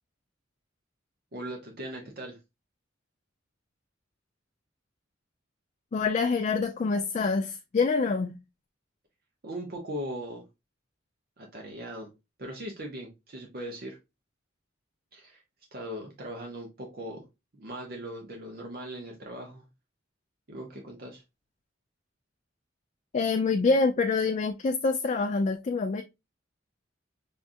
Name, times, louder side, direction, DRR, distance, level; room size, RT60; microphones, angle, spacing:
voice 1, 1.3-2.4 9.4-10.4 11.4-12.1 12.4-14.0 15.1-15.4 15.7-17.2 17.5-19.7 20.5-21.2, right 1 dB, 50° right, 0.7 m, -39 dB
voice 2, 5.9-8.3 23.1-26.0, left 4 dB, 35° left, 0.3 m, -26 dB
5.2 x 2.4 x 2.5 m
head